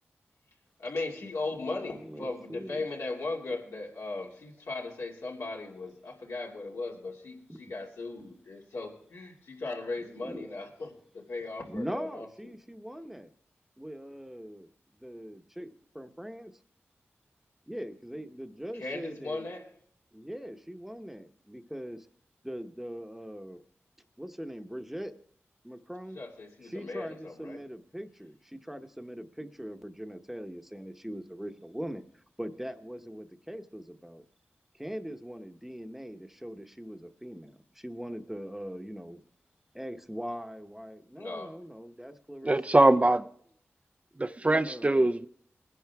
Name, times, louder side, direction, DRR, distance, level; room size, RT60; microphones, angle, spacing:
voice 1, 0.8-12.5 18.7-19.7 26.1-27.6 41.2-41.6 42.4-42.5, left 3 dB, 85° left, 2.6 m, -38 dB
voice 2, 1.6-2.8 7.5-7.7 10.2-10.5 11.7-13.3 13.8-14.7 15.0-16.5 17.7-19.5 20.1-22.1 22.4-23.6 24.2-25.1 25.6-26.2 26.6-34.2 34.7-37.5 37.8-39.2 39.7-42.5 44.5-45.1, equal, 5° right, 1.0 m, -41 dB
voice 3, 42.4-43.3 44.2-45.3, right 2 dB, 25° right, 0.6 m, -22 dB
20.5 x 10.5 x 3.5 m
cardioid pair, 50°, 5 cm